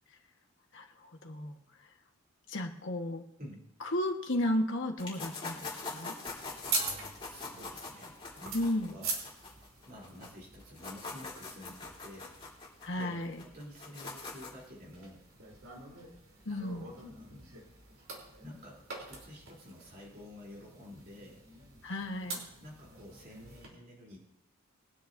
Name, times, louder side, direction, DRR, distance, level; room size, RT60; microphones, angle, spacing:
voice 1, 0.7-1.9 2.5-3.2 3.8-6.1 8.5-9.0 12.8-13.4 16.4-16.9 21.8-22.4, left 1 dB, 60° left, 3 dB, 1.4 m, -34 dB
sound 1, 5.0-10.3 10.6-14.7, left 3 dB, 25° left, 3.4 m, -43 dB
sound 2, 6.3-23.7, right 3 dB, 70° right, 3.5 m, -44 dB
voice 2, 7.2-8.6 8.9-9.2 9.8-12.4 13.0-13.2 13.4-15.2 16.5-16.6 16.8-17.4 18.4-21.4 22.6-24.2, equal, 45° right, -4 dB, 3.3 m, -50 dB
22.5 x 10.0 x 2.7 m, 0.78 s
head